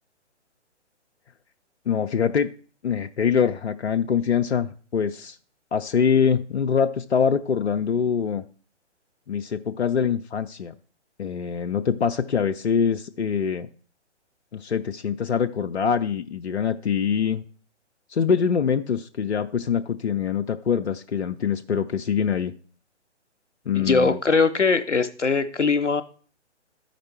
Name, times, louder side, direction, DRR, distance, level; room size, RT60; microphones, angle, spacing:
voice 1, 1.9-2.5 2.8-5.4 5.7-8.4 9.3-10.7 11.2-13.7 14.5-17.4 18.1-22.5 23.7-24.2, left 7 dB, 65° left, 0.7 m, -24 dB
voice 2, 23.7-26.0, left 4 dB, 85° left, 1.0 m, -21 dB
12.5 x 5.1 x 4.5 m
figure-of-eight pair, 130°, 35 cm